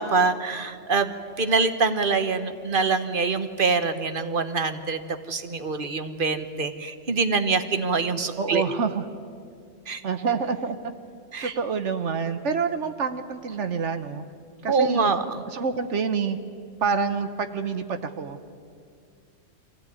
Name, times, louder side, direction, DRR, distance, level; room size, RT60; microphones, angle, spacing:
voice 1, 0.0-8.6 9.9-10.0 11.3-11.5 14.7-15.4, right 4 dB, 45° right, 10 dB, 1.2 m, -25 dB
voice 2, 8.4-9.0 10.0-10.8 11.4-14.2 14.6-15.1 15.5-16.4 16.8-18.4, right 5 dB, 70° right, 9 dB, 1.3 m, -27 dB
23.5 x 16.5 x 9.5 m, 2.3 s
omnidirectional pair, 1.3 m